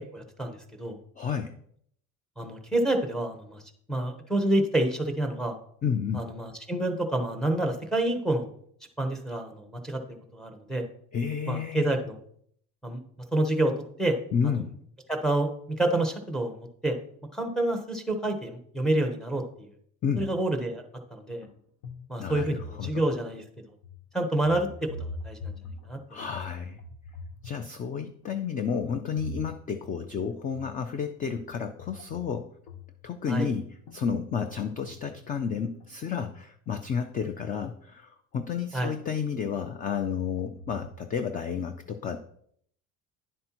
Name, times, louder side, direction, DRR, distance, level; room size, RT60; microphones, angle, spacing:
voice 1, 0.1-1.0 2.4-3.6 3.9-5.5 6.1-8.5 9.0-10.0 10.3-10.8 11.5-12.2 12.8-13.0 13.3-13.7 14.0-14.2 14.4-14.6 15.1-16.9 17.3-19.4 20.2-20.8 21.1-21.4 22.1-23.4 24.1-24.9 25.2-25.5 25.9-26.0 33.3-33.5 38.7-38.9, right 1 dB, ahead, 4 dB, 0.9 m, -28 dB
voice 2, 1.2-1.5 5.8-6.2 11.1-11.9 14.3-14.7 20.0-20.2 22.2-23.0 26.1-26.8 27.4-32.5 33.0-42.2, left 6 dB, 25° left, 9 dB, 0.4 m, -31 dB
sound 1, 21.4-21.5 21.8-23.4 23.8-24.0 24.4-26.5 26.8-28.3 28.9-30.0 30.5-30.9 31.2-33.2 33.9-36.5 37.3-37.4 37.9-38.0 39.4-41.1, left 2 dB, 70° left, 1.2 m, -43 dB
10.5 x 7.6 x 3.0 m, 0.65 s
cardioid pair, 160°, 35 cm